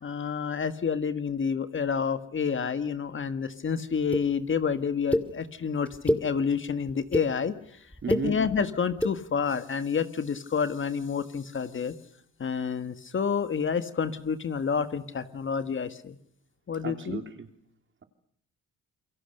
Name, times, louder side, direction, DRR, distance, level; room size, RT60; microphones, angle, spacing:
voice 1, 0.0-7.5 8.1-11.9 12.4-16.2 16.7-17.2, left 6 dB, 40° left, 10 dB, 1.7 m, -29 dB
sound 1, 4.1-4.2 5.1-5.2 5.9-6.2 6.9-7.3 7.9-8.2 8.9-9.1, left 1 dB, 5° left, 2.3 m, -25 dB
voice 2, 8.0-8.4 16.8-17.5, right 5 dB, 40° right, 7 dB, 3.0 m, -34 dB
28.0 x 23.0 x 6.7 m, 0.70 s
cardioid pair, 90°, 30 cm